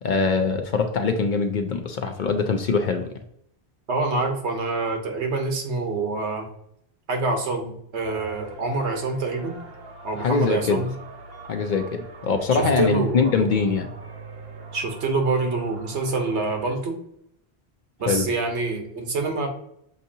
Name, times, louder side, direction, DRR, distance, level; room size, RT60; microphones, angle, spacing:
voice 1, 0.0-3.1 10.2-10.8 11.5-13.9 18.1-18.3, left 4 dB, 60° left, 6 dB, 0.6 m, -23 dB
voice 2, 3.9-6.5 7.1-9.6 10.0-10.9 12.5-13.3 14.7-17.0 18.0-19.5, right 3 dB, 90° right, 3 dB, 1.2 m, -26 dB
sound 1, 8.0-16.8, right 3 dB, 65° right, 0.9 m, -41 dB
6.7 x 2.7 x 2.7 m, 0.74 s
omnidirectional pair, 1.1 m